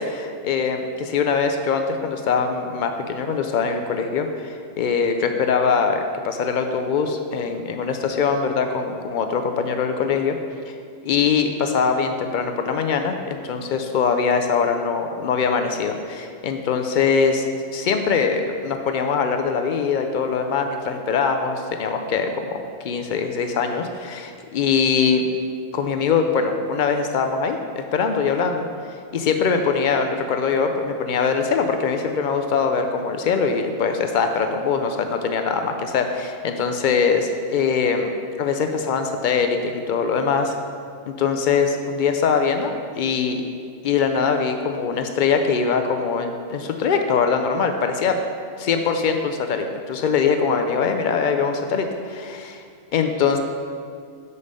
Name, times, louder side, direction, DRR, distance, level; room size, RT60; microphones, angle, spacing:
voice 1, 0.0-10.4 10.7-10.8 11.0-17.5 17.7-22.6 22.8-25.3 25.7-28.6 29.1-38.1 38.4-40.5 41.1-43.4 43.8-48.2 48.6-52.6 52.9-53.4, left 5 dB, 75° left, 5 dB, 0.4 m, -22 dB
5.4 x 5.2 x 6.5 m, 2.2 s
omnidirectional pair, 1.4 m